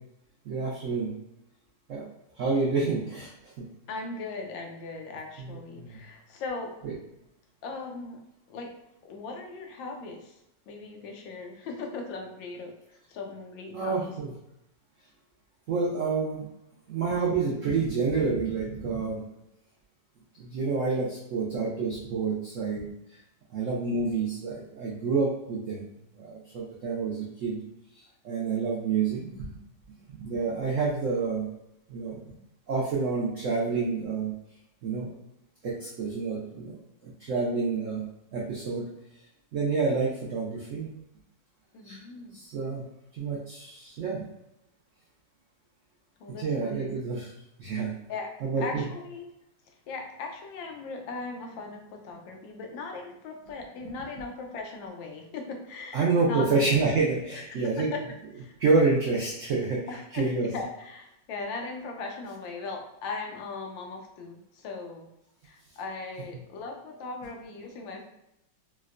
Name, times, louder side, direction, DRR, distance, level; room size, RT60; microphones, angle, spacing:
voice 1, 0.5-1.1 1.9-2.1 2.4-3.3 3.6-3.7 5.4-6.0 6.8-6.9 13.7-14.3 15.7-16.5 16.9-19.2 20.4-22.9 23.5-25.9 26.2-27.6 28.2-29.6 30.1-31.5 31.9-32.2 32.7-34.3 34.8-35.1 35.6-36.8 37.0-38.0 38.3-38.9 39.5-40.9 41.8-42.0 42.3-42.8 43.2-44.2 46.4-47.3 47.6-48.0 48.4-48.8 55.9-57.9 58.6-59.8 60.1-60.5, right 4 dB, 90° right, -4 dB, 0.6 m, -28 dB
voice 2, 3.9-6.7 7.6-8.2 8.5-8.7 9.0-10.4 10.7-12.7 13.1-14.1 41.7-42.4 46.2-46.9 48.1-48.3 48.6-49.2 49.7-56.5 57.8-58.0 58.4-58.5 59.9-65.1 65.4-68.1, left 3 dB, 80° left, 2 dB, 1.4 m, -38 dB
4.6 x 2.1 x 2.4 m, 0.84 s
omnidirectional pair, 2.1 m